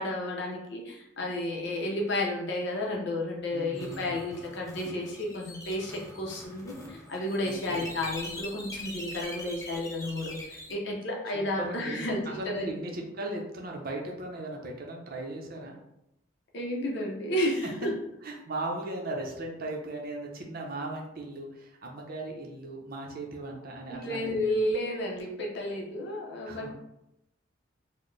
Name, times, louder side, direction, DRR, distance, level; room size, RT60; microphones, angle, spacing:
voice 1, 0.0-12.7 16.5-17.9 23.9-26.7, left 1 dB, 60° left, -1 dB, 0.6 m, -32 dB
voice 2, 3.5-4.2 7.5-7.9 11.3-15.8 18.2-24.5 26.4-26.7, right 2 dB, 45° right, 0 dB, 0.6 m, -37 dB
sound 1, 3.8-10.7, left 1 dB, 15° left, 0.5 m, -43 dB
4.1 x 2.1 x 3.2 m, 0.85 s
head